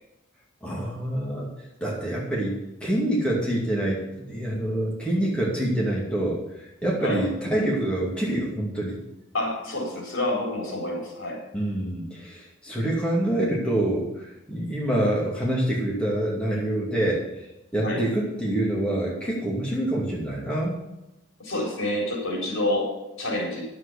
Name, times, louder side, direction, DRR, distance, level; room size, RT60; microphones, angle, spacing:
voice 1, 0.6-1.5 1.8-6.4 6.8-9.0 11.5-17.2 17.7-20.8, right 1 dB, 5° left, -5 dB, 2.4 m, -26 dB
voice 2, 9.3-11.4 17.8-18.1 21.4-23.7, left 1 dB, 80° left, -1 dB, 4.2 m, -28 dB
9.5 x 7.8 x 6.9 m, 0.95 s
head